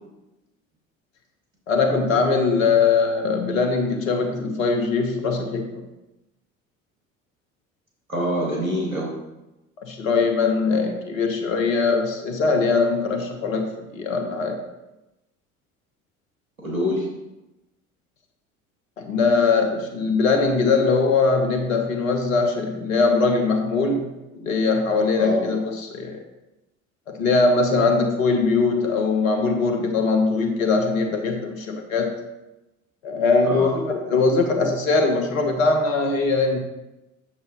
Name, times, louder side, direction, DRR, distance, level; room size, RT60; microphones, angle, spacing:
voice 1, 1.7-5.7 9.8-14.6 19.0-24.1 24.3-26.2 27.1-32.1 33.0-36.6, left 4 dB, 75° left, 4 dB, 1.3 m, -21 dB
voice 2, 8.1-9.2 16.6-17.1 25.2-25.5 33.4-33.7, equal, 85° right, -3 dB, 1.9 m, -25 dB
8.6 x 6.7 x 3.0 m, 0.98 s
figure-of-eight pair, 60°, 40 cm